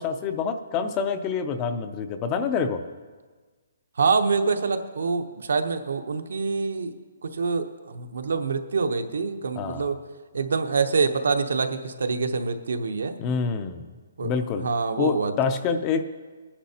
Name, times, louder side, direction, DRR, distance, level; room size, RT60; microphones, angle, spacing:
voice 1, 0.0-2.8 9.6-9.9 13.2-13.8 14.2-14.7 15.0-16.0, left 5 dB, 15° left, 9 dB, 0.4 m, -27 dB
voice 2, 4.0-6.9 7.2-10.0 10.3-13.2 14.2-14.3 14.6-15.3, right 4 dB, 75° right, 7 dB, 0.8 m, -25 dB
21.0 x 10.0 x 2.8 m, 1.4 s
hypercardioid pair, 180°, 0 cm